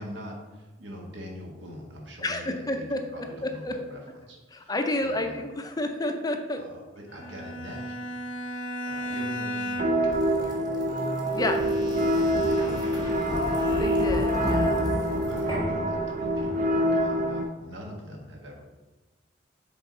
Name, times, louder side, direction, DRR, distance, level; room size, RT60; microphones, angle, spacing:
voice 1, 0.0-5.5 6.6-8.1 8.8-10.7 12.3-13.1 15.3-18.6, equal, 70° right, 0 dB, 1.3 m, -42 dB
voice 2, 2.2-3.0 3.4-3.7 4.5-6.6 11.4-11.6 13.6-14.8, left 1 dB, 20° left, 5 dB, 0.5 m, -30 dB
Bowed string instrument, 7.1-10.2, equal, 90° left, 0.6 m, -34 dB
sound 1, 9.8-17.4, right 1 dB, 45° right, 0.6 m, -26 dB
sound 2, 10.1-16.9, left 1 dB, 25° right, 1.3 m, -33 dB
6.8 x 4.0 x 4.1 m, 1.2 s
head